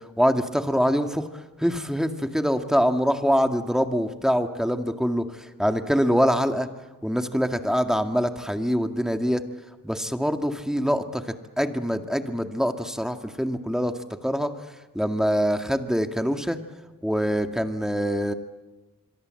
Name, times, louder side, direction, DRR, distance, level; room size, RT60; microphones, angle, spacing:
voice 1, 0.2-1.3 1.6-6.7 7.0-9.4 9.8-11.2 11.6-13.9 14.2-14.5 14.9-16.6 17.0-18.3, equal, ahead, 6 dB, 2.1 m, -24 dB
26.5 x 23.0 x 7.8 m, 1.2 s
wide cardioid pair, 70°, 34 cm